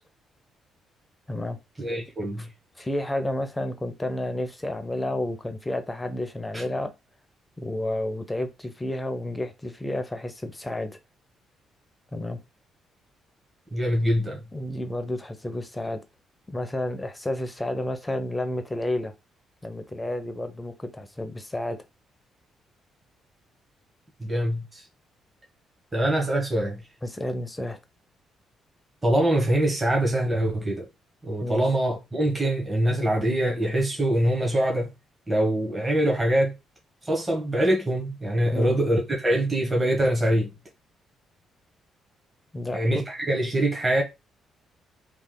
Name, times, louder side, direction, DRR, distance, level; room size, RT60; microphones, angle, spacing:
voice 1, 1.8-2.5 6.5-6.6 13.7-14.5 24.2-24.8 25.9-26.8 29.0-30.9 31.2-34.9 35.3-36.5 37.0-40.5 42.7-44.0, right 1 dB, 20° right, 1.3 m, -24 dB
voice 2, 2.8-6.9 7.6-11.0 12.1-12.4 14.5-16.0 16.5-19.1 19.6-21.8 27.0-27.8 31.4-31.7 38.5-38.8 42.5-43.0, left 1 dB, 15° left, 0.7 m, -31 dB
3.3 x 2.5 x 3.8 m
cardioid pair, 90°, 0 cm